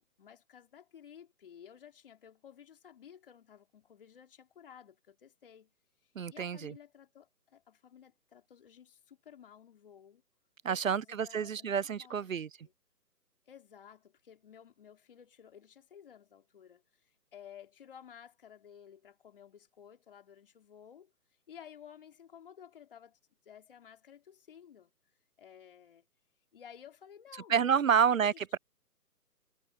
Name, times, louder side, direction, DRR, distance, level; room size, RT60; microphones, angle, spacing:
voice 1, 0.0-4.9 5.2-5.7 6.3-7.3 7.7-8.9 9.3-10.2 10.7-12.3 12.6-12.7 13.5-14.0 14.3-16.8 17.3-21.1 21.5-23.1 23.5-24.9 25.4-26.0 26.5-28.5, left 8 dB, 35° left, 3.9 m, -54 dB
voice 2, 6.2-6.7 10.6-12.5 27.5-28.6, right 7 dB, 55° right, 0.5 m, -29 dB
hypercardioid pair, 170°, 48 cm